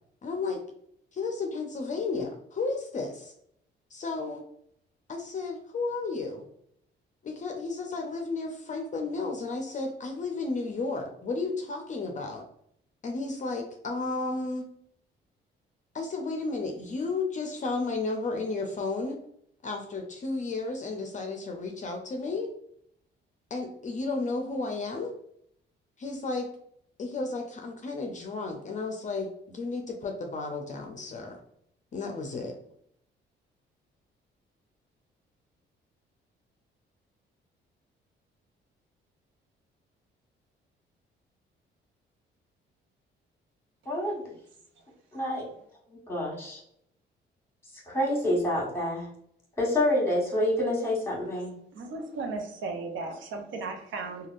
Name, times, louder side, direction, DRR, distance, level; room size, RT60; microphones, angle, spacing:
voice 1, 0.2-0.6 1.1-3.3 3.9-4.4 5.1-6.5 7.2-12.4 13.0-14.7 15.9-19.2 19.6-22.5 23.5-25.1 26.0-26.5 27.0-31.4 31.9-32.6, left 3 dB, 40° left, 3 dB, 0.5 m, -33 dB
voice 2, 43.8-44.2 45.1-45.4 46.1-46.6 47.9-49.1 49.6-51.5, left 1 dB, 15° left, -3 dB, 1.4 m, -27 dB
voice 3, 51.7-54.3, right 3 dB, 75° right, 3 dB, 0.6 m, -35 dB
3.3 x 2.3 x 2.5 m, 0.70 s
cardioid pair, 90°, 20 cm